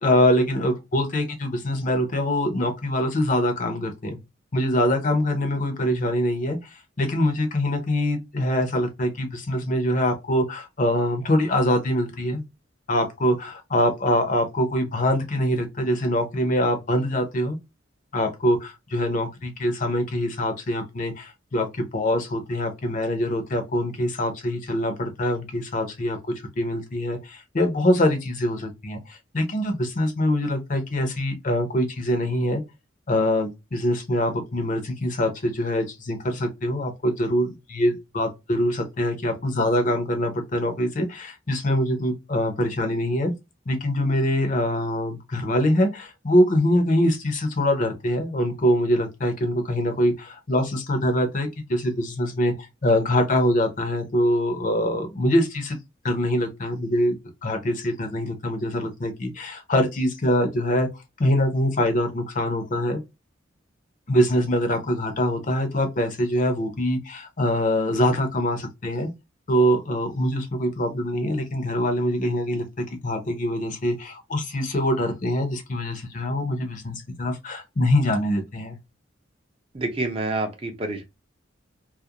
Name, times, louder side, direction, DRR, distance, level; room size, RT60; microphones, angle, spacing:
voice 1, 0.0-4.2 4.5-6.6 7.0-12.4 12.9-17.6 18.1-26.2 26.6-32.6 33.1-43.3 43.7-55.8 56.0-57.2 57.4-60.9 61.2-63.0 64.1-69.1 69.5-72.7 73.0-78.8, left 1 dB, 40° left, 0.6 m, -24 dB
voice 2, 79.7-81.0, right 2 dB, 30° right, 0.5 m, -27 dB
2.4 x 2.1 x 2.7 m
head